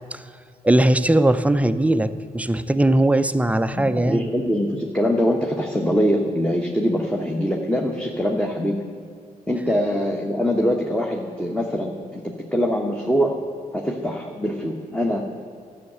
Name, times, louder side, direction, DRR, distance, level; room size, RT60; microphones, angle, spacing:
voice 1, 0.6-4.3, right 1 dB, 10° right, 11 dB, 0.5 m, -19 dB
voice 2, 3.7-8.8 9.5-13.3 13.7-15.2, equal, 5° left, 0 dB, 1.1 m, -23 dB
12.5 x 6.5 x 8.7 m, 2.4 s
cardioid pair, 90°, 15 cm